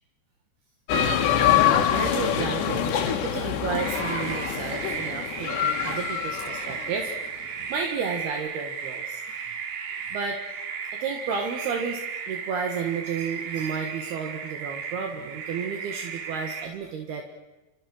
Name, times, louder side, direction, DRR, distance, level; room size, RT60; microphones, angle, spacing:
sound 1, 0.9-7.0, left 9 dB, 70° left, 3.9 m, -25 dB
voice 1, 1.9-7.4 7.7-9.6 10.1-10.4 10.9-17.2, right 5 dB, 65° right, 3 dB, 3.5 m, -32 dB
sound 2, 3.8-16.7, right 6 dB, 85° right, 4.3 m, -35 dB
28.5 x 26.5 x 6.5 m, 1.0 s
omnidirectional pair, 5.2 m